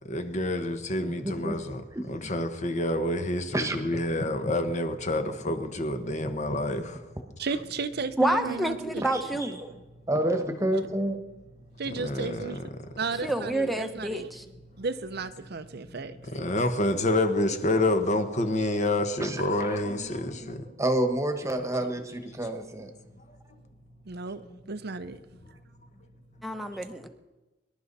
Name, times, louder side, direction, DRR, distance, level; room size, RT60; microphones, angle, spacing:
voice 1, 0.0-7.1 8.3-8.5 8.8-8.9 11.7-13.0 14.7-14.8 15.8-20.8, left 1 dB, 40° left, 1.3 m, -28 dB
voice 2, 1.2-1.6 1.9-2.1 3.5-4.0 9.1-9.7 10.1-11.2 19.2-19.8 20.8-22.9, right 1 dB, 15° right, 1.4 m, -29 dB
voice 3, 7.4-9.0 11.8-12.6 13.0-14.3 14.8-16.2 24.1-25.2, right 4 dB, 55° right, 0.7 m, -34 dB
voice 4, 8.2-9.6 13.2-14.4 26.4-27.1, right 1 dB, ahead, 1.0 m, -28 dB
24.5 x 11.5 x 4.1 m
head